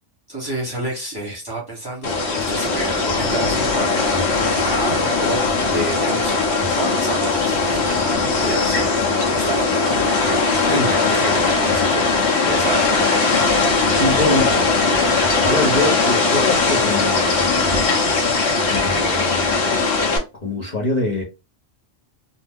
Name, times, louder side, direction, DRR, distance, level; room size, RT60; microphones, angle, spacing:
voice 1, 0.3-5.4 5.7-9.8 10.2-10.4 10.7-12.1 12.4-13.4, right 2 dB, 20° right, 1.0 m, -30 dB
sound 1, 2.0-20.2, left 4 dB, 60° left, 1.0 m, -19 dB
voice 2, 14.0-14.5 15.4-17.9 18.7-20.1 20.4-21.2, left 1 dB, 40° left, 0.7 m, -24 dB
2.7 x 2.1 x 3.4 m
omnidirectional pair, 1.2 m